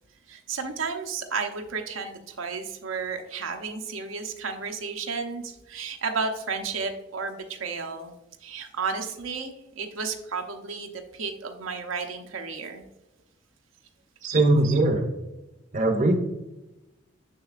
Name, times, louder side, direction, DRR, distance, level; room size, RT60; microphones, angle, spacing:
voice 1, 0.3-8.1 8.4-12.8 14.6-14.7, right 5 dB, 85° right, 4 dB, 0.7 m, -32 dB
voice 2, 14.2-15.0 15.7-16.2, right 2 dB, 40° right, 5 dB, 0.6 m, -21 dB
6.6 x 6.5 x 2.4 m, 0.95 s
head